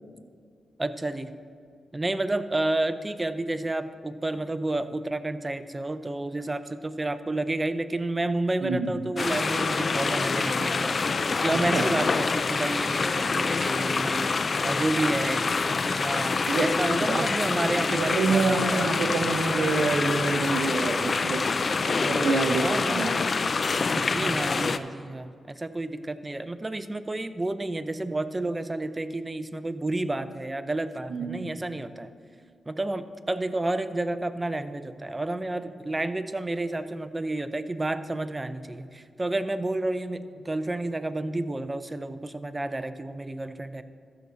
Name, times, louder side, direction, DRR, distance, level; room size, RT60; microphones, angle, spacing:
voice 1, 0.8-1.3 1.9-10.9 11.4-14.3 14.6-15.5 15.8-18.8 22.6-23.1 24.0-32.1 32.7-43.8, right 2 dB, 20° right, 11 dB, 0.5 m, -30 dB
voice 2, 8.6-8.9 11.7-11.9 16.5-16.7 17.1-17.3 17.9-21.4 21.9-23.1 23.9-24.4 31.1-31.5, right 3 dB, 75° right, 4 dB, 0.8 m, -27 dB
sound 1, 9.2-24.8, left 4 dB, 45° left, 0.3 m, -26 dB
13.5 x 6.2 x 4.0 m, 2.2 s
cardioid pair, 80°, 0 cm